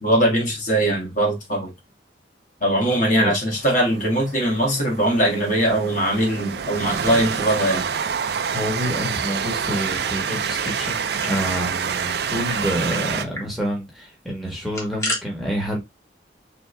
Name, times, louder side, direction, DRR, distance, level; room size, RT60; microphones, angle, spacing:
voice 1, 0.0-1.7 2.6-7.9, right 1 dB, 45° left, 1.7 m, -21 dB
Train, 3.5-13.2, right 6 dB, 60° right, 0.4 m, -27 dB
voice 2, 8.5-15.8, equal, ahead, 1.3 m, -28 dB
sound 1, 10.4-11.4 11.7-11.8 12.1-12.6 12.9-13.0 13.3-13.5 14.5-15.2, left 1 dB, 15° left, 1.3 m, -32 dB
3.8 x 3.6 x 3.3 m
head